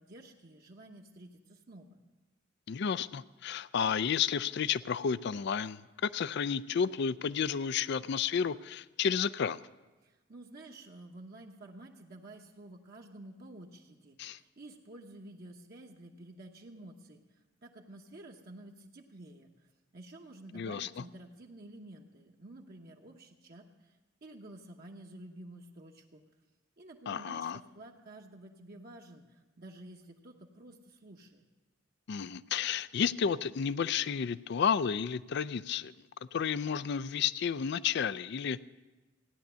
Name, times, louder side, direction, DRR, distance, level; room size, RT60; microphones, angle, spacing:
voice 1, 0.0-2.0 10.0-26.2 26.8-31.4, right 1 dB, 45° right, 1 dB, 1.0 m, -51 dB
voice 2, 2.7-9.6 14.2-14.4 20.5-21.0 27.1-27.6 32.1-35.9 36.3-38.6, left 7 dB, 55° left, 17 dB, 0.4 m, -31 dB
16.0 x 10.5 x 6.8 m, 1.2 s
head